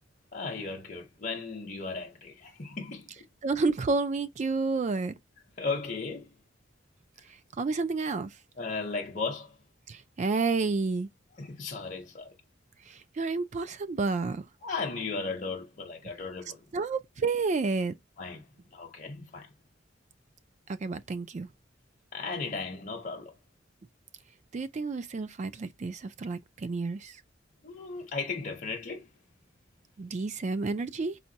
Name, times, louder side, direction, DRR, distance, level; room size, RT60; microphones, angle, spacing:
voice 1, 0.3-3.1 5.6-6.3 8.6-9.6 11.4-12.3 14.6-16.6 18.2-19.5 22.1-23.3 27.6-29.1, left 4 dB, 45° left, 0.7 m, -36 dB
voice 2, 3.4-5.2 7.6-8.3 9.9-11.1 12.9-14.5 16.7-17.9 20.7-21.5 24.5-27.2 30.0-31.2, right 4 dB, 40° right, 0.4 m, -30 dB
4.1 x 2.2 x 2.7 m
head